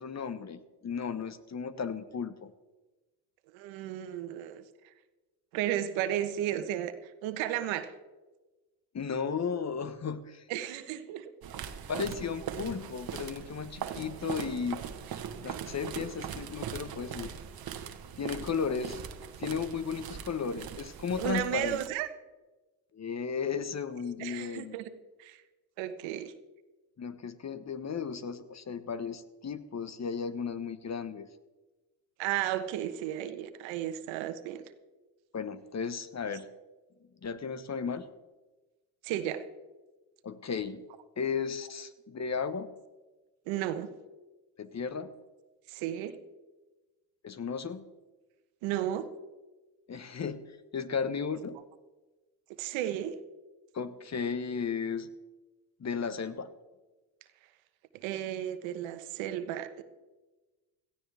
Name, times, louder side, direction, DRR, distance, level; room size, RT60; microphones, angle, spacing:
voice 1, 0.0-2.5 8.9-10.4 11.9-14.8 15.4-17.3 18.2-19.0 19.4-21.8 22.9-24.8 27.0-31.3 35.3-36.5 37.2-38.0 40.2-40.8 41.2-42.7 44.6-45.1 47.2-47.8 49.9-51.6 53.7-55.1 55.8-56.5, left 6 dB, 35° left, 13 dB, 1.2 m, -35 dB
voice 2, 3.5-4.6 5.5-7.9 10.5-11.3 21.2-22.1 24.2-24.9 25.2-25.4 25.8-26.3 32.2-34.7 39.0-39.4 43.5-43.9 45.7-46.1 48.6-49.0 52.6-53.1 57.9-59.8, right 12 dB, 80° right, 10 dB, 1.2 m, -33 dB
sound 1, 11.4-21.9, right 8 dB, 50° right, 1.4 m, -41 dB
17.0 x 14.5 x 3.5 m, 1.2 s
hypercardioid pair, 60°, 46 cm